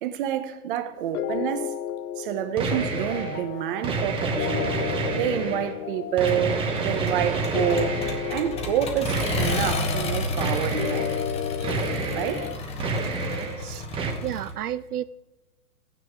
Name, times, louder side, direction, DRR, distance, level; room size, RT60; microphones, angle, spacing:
voice 1, 0.0-1.8 2.2-8.0 8.3-11.1 11.6-11.8 12.1-12.5 13.4-13.5, right 10 dB, 35° right, 1.0 m, -28 dB
sound 1, 1.1-12.6, left 11 dB, 75° left, 0.6 m, -34 dB
sound 2, 2.6-3.4 3.8-5.7 6.2-8.5 9.0-9.9 10.4-11.2 11.6-12.5 12.8-13.6 13.9-14.1, right 3 dB, 10° right, 1.1 m, -29 dB
Accelerating revving vroom, 6.3-14.5, left 2 dB, 15° left, 1.1 m, -32 dB
voice 2, 14.2-15.0, right 11 dB, 80° right, 0.5 m, -31 dB
14.0 x 9.3 x 4.6 m
hypercardioid pair, 140°, 45 cm